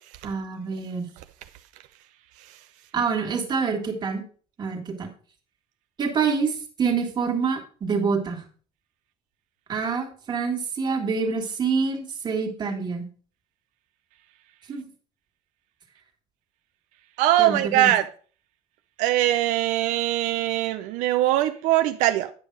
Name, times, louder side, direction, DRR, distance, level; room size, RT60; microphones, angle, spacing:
voice 1, 0.2-1.1 2.9-4.2 4.6-5.1 6.0-8.4 9.7-13.1 14.7-14.9 17.4-17.9, right 5 dB, 35° right, 1.8 m, -26 dB
voice 2, 17.2-18.1 19.0-22.3, right 14 dB, 90° right, 0.5 m, -22 dB
9.1 x 5.3 x 4.6 m
cardioid pair, 130°, 13 cm